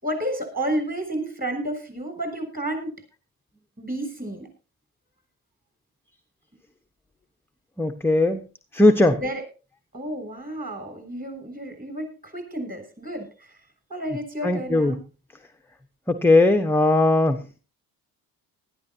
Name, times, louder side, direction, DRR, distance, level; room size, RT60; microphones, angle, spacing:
voice 1, 0.0-3.0 3.8-4.5 9.1-9.4 9.9-13.6 13.9-15.0, right 1 dB, 20° right, 7 dB, 7.0 m, -31 dB
voice 2, 7.8-8.4 8.7-9.2 14.4-14.9 16.1-17.4, left 2 dB, 5° left, 6 dB, 1.0 m, -18 dB
19.0 x 13.0 x 2.8 m, 0.33 s
hypercardioid pair, 60°, 46 cm